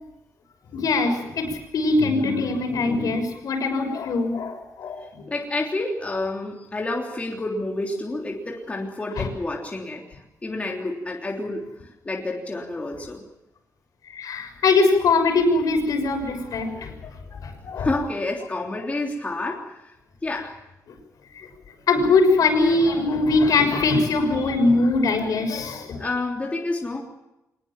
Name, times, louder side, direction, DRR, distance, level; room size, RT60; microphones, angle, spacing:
voice 1, 0.7-5.2 9.2-9.3 14.1-17.1 17.4-17.9 21.4-21.5 21.9-26.1, left 3 dB, 70° left, 4 dB, 6.3 m, -22 dB
voice 2, 5.3-11.7 12.0-13.2 17.8-20.0 20.2-20.5 26.0-27.0, left 2 dB, 20° left, -1 dB, 3.4 m, -29 dB
24.5 x 20.5 x 7.5 m, 0.91 s
wide cardioid pair, 145°, 6 cm